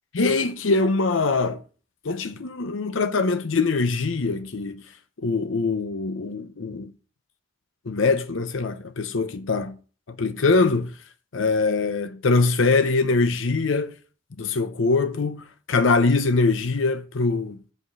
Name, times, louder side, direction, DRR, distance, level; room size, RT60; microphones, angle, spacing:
voice 1, 0.1-1.6 2.0-4.8 5.2-6.9 7.9-9.7 10.2-10.9 11.3-13.9 14.4-17.7, left 3 dB, 90° left, 0.7 m, -23 dB
8.2 x 4.9 x 5.4 m
head